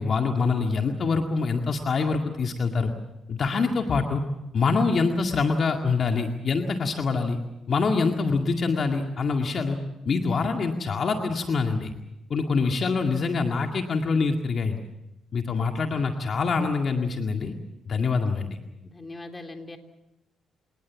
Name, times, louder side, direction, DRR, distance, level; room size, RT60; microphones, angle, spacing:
voice 1, 0.0-2.9 3.3-4.2 4.5-7.4 7.7-9.8 10.1-11.9 12.3-14.8 15.3-17.5 17.9-18.6, left 4 dB, 50° left, 3 dB, 2.0 m, -25 dB
voice 2, 18.8-19.8, left 2 dB, 20° left, 5 dB, 3.4 m, -40 dB
28.0 x 19.0 x 7.4 m, 0.94 s
cardioid pair, 90°, 0 cm